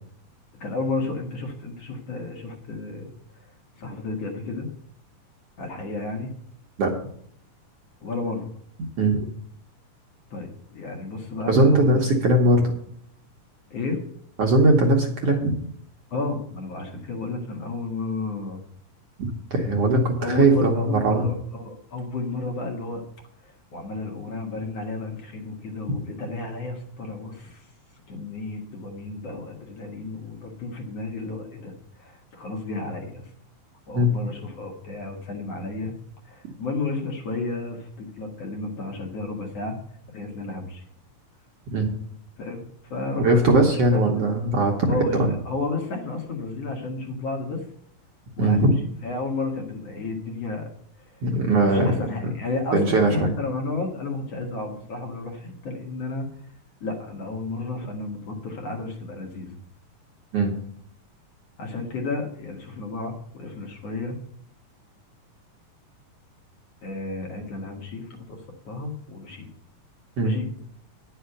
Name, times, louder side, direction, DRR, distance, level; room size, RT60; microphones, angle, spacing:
voice 1, 0.6-3.5 3.8-4.7 5.6-6.3 8.0-8.5 10.3-12.0 13.7-14.0 16.1-18.6 20.2-23.0 23.4-27.7 28.1-33.3 33.9-35.9 36.2-39.8 40.1-40.8 42.4-44.3 44.9-45.2 45.5-47.7 48.4-48.7 49.0-50.7 51.0-51.2 51.6-56.3 56.8-59.6 61.6-64.2 66.8-69.5 70.2-70.5, left 3 dB, 55° left, 1 dB, 2.2 m, -32 dB
voice 2, 11.5-12.6 14.4-15.6 19.5-21.3 33.9-34.1 41.7-41.9 43.2-45.4 48.4-48.7 51.2-52.0 52.7-53.3 60.3-60.5 70.2-70.3, right 2 dB, 60° right, 0 dB, 1.8 m, -20 dB
10.5 x 5.7 x 7.8 m, 0.65 s
omnidirectional pair, 4.0 m